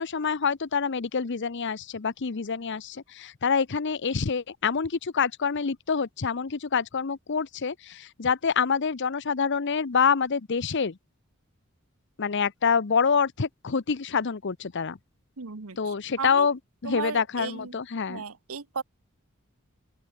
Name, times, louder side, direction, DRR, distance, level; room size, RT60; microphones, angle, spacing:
voice 1, 0.0-11.0 12.2-15.0 15.8-18.2, left 6 dB, 55° left, 0.7 m, -26 dB
voice 2, 15.4-16.5 16.8-17.8 18.1-18.8, right 5 dB, 75° right, 1.1 m, -35 dB
open air
head